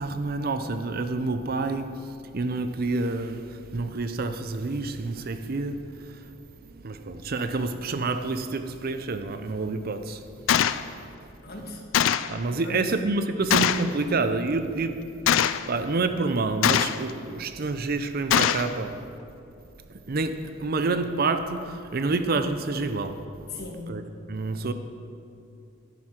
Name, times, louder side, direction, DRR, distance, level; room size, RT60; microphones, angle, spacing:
voice 1, 0.0-1.9 2.3-5.8 6.1-6.2 6.8-10.2 12.3-19.0 20.1-23.2 23.9-24.0 24.3-24.7, right 3 dB, 50° right, 0.5 m, -28 dB
Gunshot gunfire, 10.5-10.8 11.9-12.3 13.5-13.9 15.3-15.7 16.6-17.1 18.3-18.7, left 9 dB, 75° left, 0.4 m, -22 dB
voice 2, 11.4-11.8 12.6-12.8 23.5-23.9, left 3 dB, 50° left, 1.5 m, -38 dB
11.0 x 11.0 x 4.4 m
head